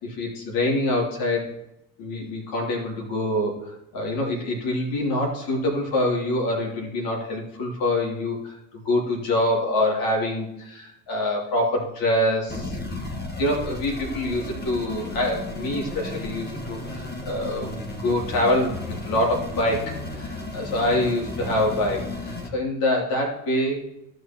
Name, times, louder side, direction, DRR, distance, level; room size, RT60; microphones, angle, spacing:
voice 1, 0.0-1.5 2.0-12.8 13.4-17.7 18.0-23.8, left 1 dB, 55° left, -1 dB, 3.1 m, -25 dB
sound 1, 12.5-22.5, left 2 dB, 25° left, 2.2 m, -34 dB
15.5 x 6.6 x 3.0 m, 0.87 s
figure-of-eight pair, 65°, 40 cm